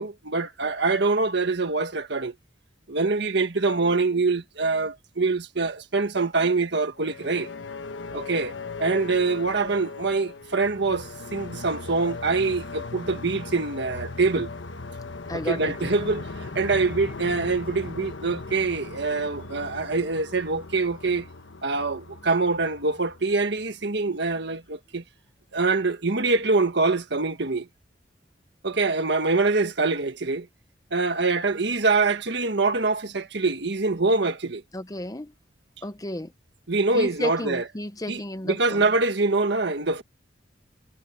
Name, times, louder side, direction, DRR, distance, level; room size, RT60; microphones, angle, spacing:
voice 1, 0.0-2.3 2.9-7.5 8.1-8.5 8.8-14.5 15.5-21.3 21.6-25.0 25.5-27.7 28.6-30.5 30.9-34.6 36.7-37.6 38.1-38.2 38.5-40.0, right 3 dB, 65° right, 1.7 m, -24 dB
sound 1, 7.0-23.8, left 3 dB, 85° left, 1.2 m, -38 dB
voice 2, 15.3-15.8 34.7-35.3 35.8-36.3 36.9-38.9, left 1 dB, 20° left, 0.9 m, -33 dB
head